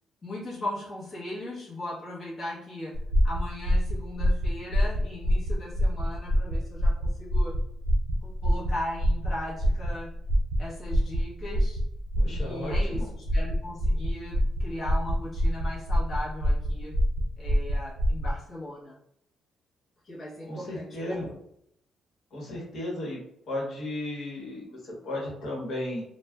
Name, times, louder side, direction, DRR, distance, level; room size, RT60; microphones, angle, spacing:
voice 1, 0.2-7.6 8.2-10.1 10.6-11.8 12.3-17.0 17.4-19.0 20.0-21.4, left 1 dB, 30° left, -7 dB, 0.9 m, -38 dB
sound 1, 2.9-18.4, equal, 70° right, 0.5 m, -26 dB
voice 2, 12.2-13.1 20.5-21.3 22.3-23.2 23.5-26.0, left 1 dB, 60° left, -3 dB, 1.1 m, -35 dB
2.4 x 2.1 x 3.4 m, 0.73 s
cardioid pair, 135°, 0 cm